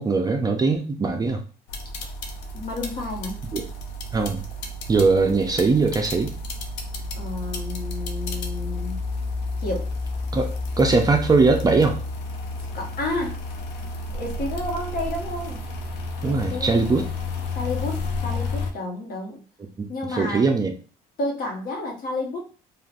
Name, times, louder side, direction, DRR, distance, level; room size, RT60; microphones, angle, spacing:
voice 1, 0.0-1.4 3.5-3.7 4.1-4.4 4.9-6.3 10.3-12.0 16.2-17.1 19.8-19.9 20.1-20.7, right 4 dB, 20° right, 4 dB, 0.4 m, -21 dB
sound 1, 1.7-18.7, left 2 dB, 90° left, 0.5 m, -31 dB
voice 2, 2.5-3.4 7.1-9.0 9.6-9.9 12.7-13.4 14.1-15.6 16.2-17.1 17.5-19.4 19.9-20.5 21.2-22.4, left 2 dB, 60° left, 0 dB, 1.0 m, -31 dB
3.2 x 2.3 x 2.4 m, 0.37 s
cardioid pair, 110°, 17 cm